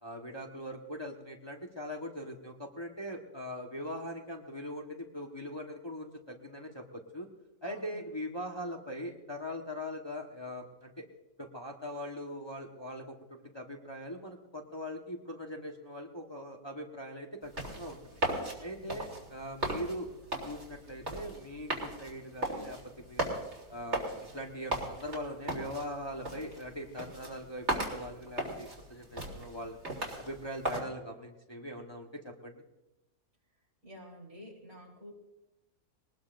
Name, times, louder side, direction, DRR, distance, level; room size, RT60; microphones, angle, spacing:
voice 1, 0.0-7.3 7.6-11.0 11.4-18.2 18.6-20.1 20.4-23.3 23.7-24.1 24.3-29.8 30.2-32.6, equal, 20° left, 0 dB, 1.3 m, -41 dB
voice 2, 7.6-8.0 18.8-19.0 33.8-35.1, equal, 65° right, -1 dB, 4.6 m, -49 dB
sound 1, 17.4-30.8, right 1 dB, 45° right, 3.6 m, -38 dB
21.5 x 19.5 x 2.6 m, 0.97 s
omnidirectional pair, 1.6 m